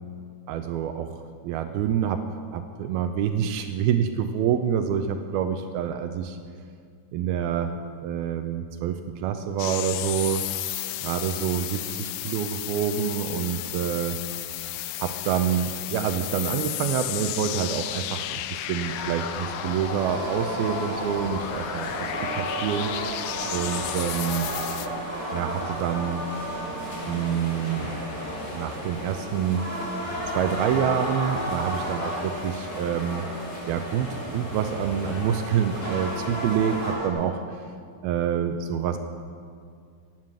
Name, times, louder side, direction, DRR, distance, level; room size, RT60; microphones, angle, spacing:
voice 1, 0.5-2.2 2.5-6.4 7.1-7.7 8.0-10.5 11.0-14.2 15.0-22.9 23.5-24.5 25.3-26.3 27.1-27.9 28.5-29.7 30.4-33.3 33.7-37.7 38.0-39.0, right 8 dB, 85° right, 8 dB, 2.2 m, -27 dB
sound 1, 9.6-24.9, left 14 dB, 85° left, 2.8 m, -33 dB
sound 2, 18.8-36.9, equal, 55° left, 6.6 m, -36 dB
sound 3, 19.9-37.1, right 1 dB, 5° right, 1.5 m, -34 dB
17.5 x 9.2 x 7.4 m, 2.2 s
omnidirectional pair, 5.0 m